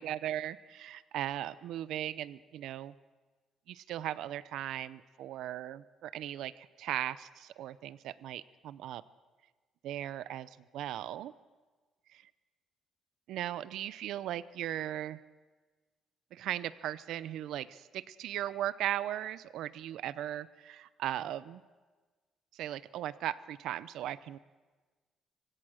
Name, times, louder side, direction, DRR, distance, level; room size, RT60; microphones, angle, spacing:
voice 1, 0.0-2.9 3.7-9.0 9.8-11.3 12.1-12.2 13.3-15.2 16.3-21.6 22.5-24.4, right 12 dB, 75° right, 17 dB, 0.6 m, -38 dB
24.5 x 16.5 x 6.4 m, 1.3 s
cardioid pair, 155°, 0 cm